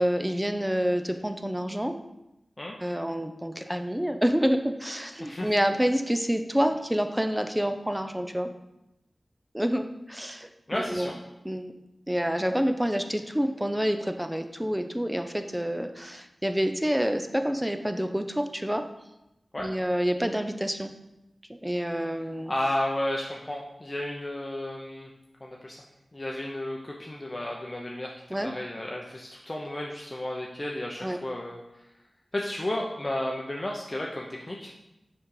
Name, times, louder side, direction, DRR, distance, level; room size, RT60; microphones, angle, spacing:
voice 1, 0.0-2.0 2.8-8.5 9.5-11.1 11.4-11.7 12.1-18.8 19.6-20.9 21.5-22.5 28.3-28.5 31.0-31.2, equal, 10° right, 7 dB, 0.6 m, -28 dB
voice 2, 10.7-11.1 19.5-19.7 22.5-25.1 25.4-25.8 26.1-28.1 28.4-31.6 32.3-34.7, left 1 dB, 30° left, -2 dB, 0.8 m, -32 dB
6.2 x 5.3 x 4.8 m, 0.92 s
wide cardioid pair, 70°, 0 cm